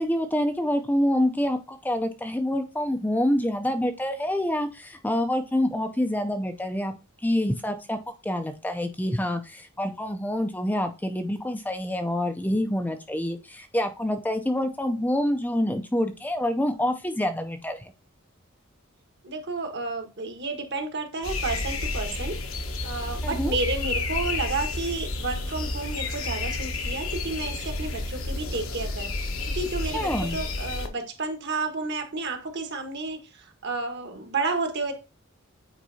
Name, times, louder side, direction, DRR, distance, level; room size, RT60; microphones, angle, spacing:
voice 1, 0.0-6.9 7.2-17.9 23.2-23.6 29.9-30.4, left 1 dB, 10° left, 0.5 m, -27 dB
voice 2, 19.2-22.4 22.8-29.3 29.5-34.9, right 3 dB, 55° right, 1.4 m, -31 dB
sound 1, 21.2-30.9, left 2 dB, 80° left, 1.3 m, -31 dB
9.1 x 4.6 x 2.8 m
head